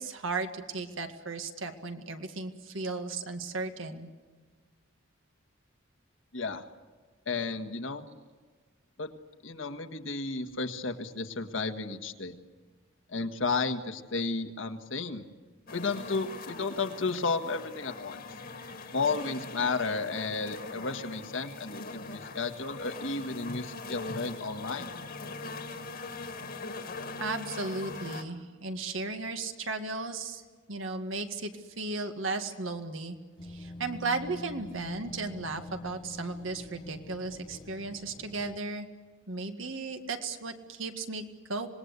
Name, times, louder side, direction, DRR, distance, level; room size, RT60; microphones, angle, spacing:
voice 1, 0.0-4.1 27.2-30.4 30.7-31.5 31.8-33.2 33.4-38.9 39.3-41.7, right 3 dB, 70° right, 6 dB, 2.0 m, -35 dB
voice 2, 7.3-8.1 9.0-9.1 9.4-12.3 13.1-15.2 15.7-18.2 18.9-24.9, left 4 dB, 65° left, 7 dB, 1.7 m, -33 dB
sound 1, 15.7-28.2, left 3 dB, 50° left, 2.0 m, -42 dB
sound 2, 33.4-38.6, left 1 dB, 25° left, 1.1 m, -45 dB
26.5 x 19.5 x 8.2 m, 1.4 s
head